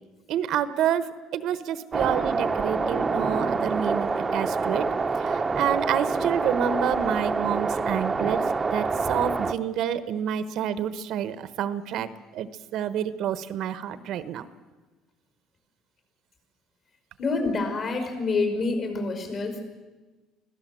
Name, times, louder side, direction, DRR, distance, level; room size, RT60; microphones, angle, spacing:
voice 1, 0.3-4.9 5.2-8.4 8.7-14.5, right 9 dB, 65° right, 13 dB, 1.2 m, -28 dB
sound 1, 1.9-9.5, right 4 dB, 20° right, 1.0 m, -26 dB
voice 2, 17.2-19.6, left 3 dB, 45° left, 5 dB, 5.6 m, -27 dB
25.0 x 16.5 x 7.7 m, 1.2 s
cardioid pair, 125°, 0 cm